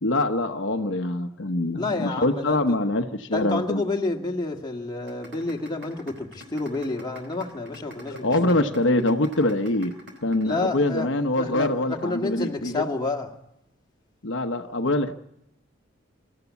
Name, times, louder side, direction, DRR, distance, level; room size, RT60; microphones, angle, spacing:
voice 1, 0.0-3.8 8.2-9.9 10.2-12.8 14.2-15.1, left 2 dB, 65° left, 5 dB, 1.1 m, -24 dB
voice 2, 1.8-2.8 3.3-8.6 10.4-11.1 11.4-13.3, left 3 dB, 20° left, 1 dB, 1.9 m, -29 dB
sound 1, 5.1-11.1, equal, 60° right, 4.3 m, -44 dB
26.5 x 13.5 x 8.3 m, 0.82 s
head